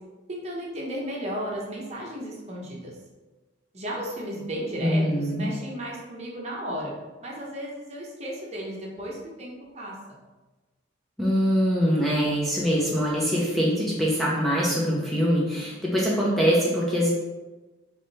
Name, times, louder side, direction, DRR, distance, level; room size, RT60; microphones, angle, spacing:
voice 1, 0.3-2.9 3.7-6.9 7.2-10.2, equal, 35° right, -3 dB, 0.9 m, -34 dB
voice 2, 4.8-5.5 11.2-17.1, equal, ahead, -6 dB, 0.6 m, -23 dB
3.5 x 3.2 x 4.0 m, 1.2 s
head